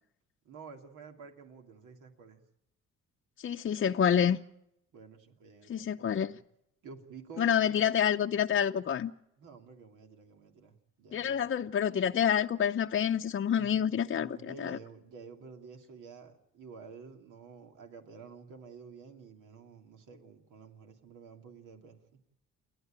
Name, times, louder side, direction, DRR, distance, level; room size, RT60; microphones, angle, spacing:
voice 1, 0.4-2.4 4.9-6.4 6.8-7.9 9.4-11.6 13.5-13.8 14.1-22.2, right 5 dB, 85° right, 2.8 m, -51 dB
voice 2, 3.4-4.4 5.7-6.4 7.4-9.1 11.1-14.8, left 8 dB, 40° left, 0.7 m, -28 dB
29.5 x 11.5 x 8.9 m
cardioid pair, 90°, 30 cm